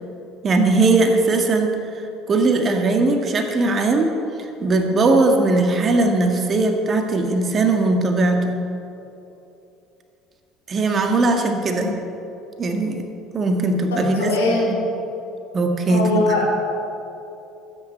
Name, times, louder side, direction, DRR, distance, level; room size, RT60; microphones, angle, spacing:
voice 1, 0.4-1.7 2.3-4.1 4.6-8.6 10.7-12.0 12.6-13.0 13.3-14.3 14.7-14.8 15.5-16.3, right 2 dB, 35° right, 4 dB, 1.7 m, -19 dB
voice 2, 13.9-14.7 15.9-16.4, left 2 dB, 75° left, -3 dB, 3.8 m, -21 dB
22.0 x 9.3 x 4.4 m, 2.9 s
figure-of-eight pair, 60°, 0 cm